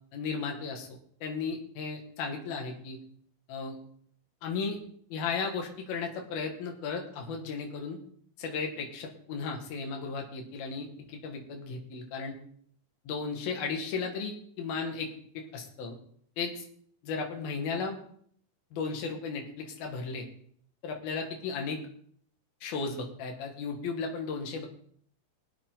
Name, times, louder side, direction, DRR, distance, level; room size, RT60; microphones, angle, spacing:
voice 1, 0.1-3.0 3.5-3.8 4.4-4.8 5.1-8.0 8.4-12.3 13.1-15.1 15.5-16.0 16.4-16.6 17.0-18.0 18.7-20.3 20.8-21.8 22.6-24.7, left 5 dB, 65° left, 2 dB, 3.7 m, -35 dB
22.0 x 8.2 x 3.9 m, 0.62 s
omnidirectional pair, 4.8 m